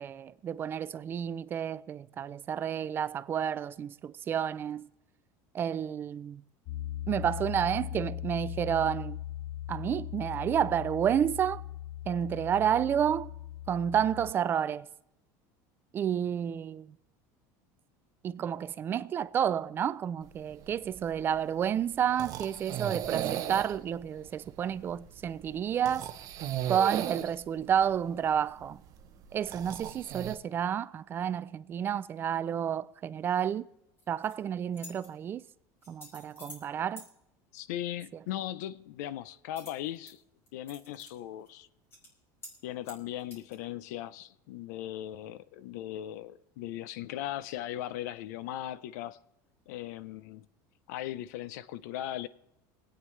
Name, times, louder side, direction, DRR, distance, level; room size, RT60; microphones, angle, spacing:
voice 1, 0.0-4.9 5.5-6.4 7.1-9.2 9.7-11.6 12.1-13.3 13.7-14.9 15.9-16.9 18.2-26.1 26.7-28.8 29.3-33.7 34.1-35.4 35.9-37.1, right 9 dB, 25° right, 0.3 m, -30 dB
Piano, 6.7-14.3, left 13 dB, 45° left, 0.5 m, -39 dB
sound 1, 20.3-30.4, right 11 dB, 40° right, 0.9 m, -38 dB
sound 2, 34.0-34.3 34.7-35.1 35.8-36.7 37.0-37.1 39.6-40.1 40.5-41.1 41.5-41.6 41.9-42.1 42.4-42.6 42.8-43.6, left 1 dB, 25° left, 3.2 m, -49 dB
voice 2, 37.5-40.2 40.5-41.7 42.6-49.2 49.7-50.5 50.9-52.3, left 12 dB, 90° left, 0.6 m, -38 dB
23.0 x 9.0 x 3.2 m
cardioid pair, 160°, 9 cm